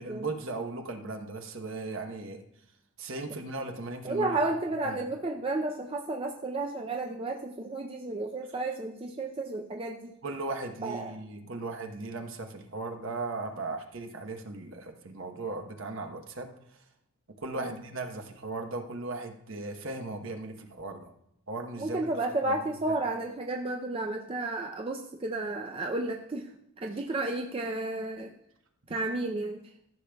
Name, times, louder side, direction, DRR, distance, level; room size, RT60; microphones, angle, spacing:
voice 1, 0.0-2.4 3.0-4.4 4.8-5.0 10.2-16.5 17.4-21.1 21.5-22.1 22.5-22.7, right 3 dB, 60° right, 5 dB, 0.9 m, -37 dB
voice 2, 4.0-10.1 10.8-11.2 17.5-17.8 21.8-26.5 26.8-28.3 28.9-29.6, right 2 dB, 25° right, 1 dB, 0.4 m, -32 dB
13.5 x 6.5 x 2.3 m, 0.77 s
head